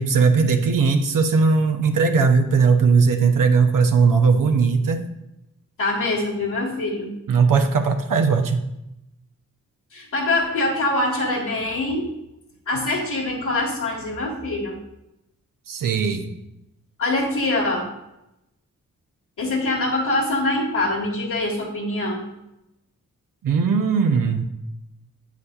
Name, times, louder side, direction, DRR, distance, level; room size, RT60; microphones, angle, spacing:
voice 1, 0.0-5.0 7.3-8.6 15.7-16.3 23.4-24.5, right 5 dB, 75° right, 5 dB, 0.8 m, -18 dB
voice 2, 5.8-7.1 9.9-12.1 12.6-14.8 17.0-17.9 19.4-22.2, left 2 dB, 70° left, -5 dB, 1.7 m, -24 dB
8.3 x 8.0 x 2.4 m, 0.87 s
cardioid pair, 50°, 33 cm